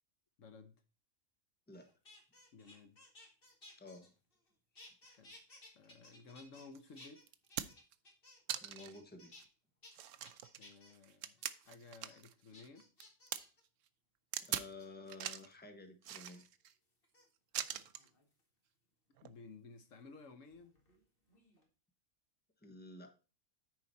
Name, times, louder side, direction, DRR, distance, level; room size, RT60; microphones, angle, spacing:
voice 1, 0.4-0.8 2.5-3.0 5.0-5.4 5.7-7.2 10.6-12.9 17.6-17.9 19.2-20.8, left 4 dB, 70° left, 1.3 m, -56 dB
sound 1, 1.7-4.5 4.8-6.7 7.0-8.5 8.8-9.4 9.8-9.9 10.3-10.9 11.4-11.7 12.1-12.2 12.5-13.6 14.4-14.9 16.1-16.4 17.0-17.2 17.8-18.4 19.8-21.0 21.3-21.7, left 2 dB, 40° left, 2.2 m, -59 dB
sound 2, 6.8-6.9 7.3-7.9 8.5-9.0 9.4-9.5 9.9-12.3 12.6-13.4 14.3-14.7 15.1-15.5 16.0-16.7 17.5-18.1 19.2-19.3, right 10 dB, 70° right, 1.0 m, -42 dB
voice 2, 8.6-9.3 14.4-16.5 22.6-23.2, left 2 dB, 10° left, 1.1 m, -52 dB
9.6 x 4.9 x 4.1 m
omnidirectional pair, 1.4 m